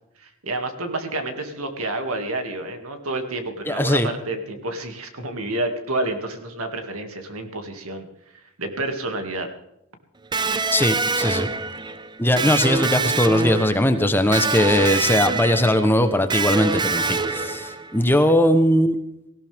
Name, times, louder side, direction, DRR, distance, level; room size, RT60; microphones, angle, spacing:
voice 1, 0.2-8.1 8.6-9.5 18.2-18.3, right 2 dB, 75° right, 6 dB, 2.4 m, -29 dB
voice 2, 3.7-4.1 10.7-11.5 12.2-19.0, left 1 dB, 10° left, 8 dB, 1.0 m, -19 dB
Electric guitar, 10.3-18.0, right 3 dB, 20° right, 0.6 m, -25 dB
18.0 x 16.5 x 3.6 m, 0.84 s
head